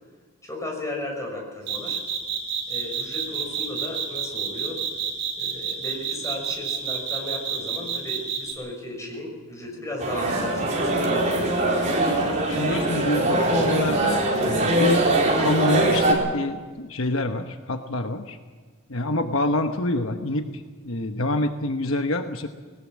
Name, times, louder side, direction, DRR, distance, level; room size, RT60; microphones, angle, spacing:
voice 1, 0.4-2.0 2.7-4.8 5.4-12.0, left 1 dB, 15° left, 1 dB, 5.8 m, -35 dB
sound 1, 1.7-8.5, right 7 dB, 50° right, 5.3 m, -28 dB
sound 2, 10.0-16.1, right 1 dB, 35° right, 4.3 m, -22 dB
voice 2, 12.5-15.1 15.4-18.4 18.9-22.5, left 2 dB, 70° left, 6 dB, 1.1 m, -27 dB
20.0 x 19.0 x 7.4 m, 1.5 s
head